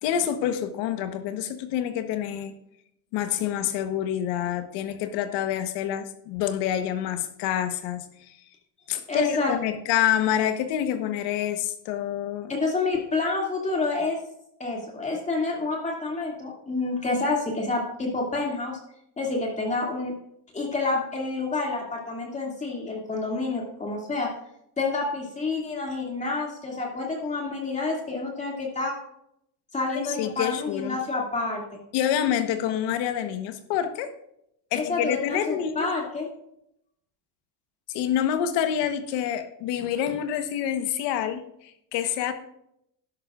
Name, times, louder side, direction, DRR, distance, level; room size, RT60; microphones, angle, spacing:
voice 1, 0.0-2.5 3.1-8.0 8.9-12.5 29.9-31.0 31.9-34.1 34.7-35.9 37.9-42.3, left 10 dB, 70° left, 9 dB, 1.3 m, -27 dB
voice 2, 9.1-9.5 12.5-14.2 14.6-18.8 19.2-20.1 20.5-24.3 24.8-29.0 29.7-31.8 34.7-36.3, left 3 dB, 15° left, -1 dB, 2.5 m, -28 dB
12.0 x 11.0 x 2.5 m, 0.76 s
cardioid pair, 150°, 43 cm